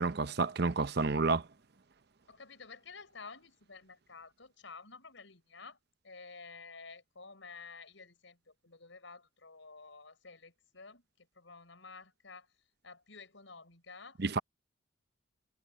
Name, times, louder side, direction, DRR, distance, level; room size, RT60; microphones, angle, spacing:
voice 1, 0.0-1.4 14.2-14.4, right 4 dB, 55° right, 0.8 m, -30 dB
voice 2, 2.3-5.8 6.0-11.0 11.4-12.5 12.8-14.2, left 4 dB, 80° left, 4.9 m, -51 dB
head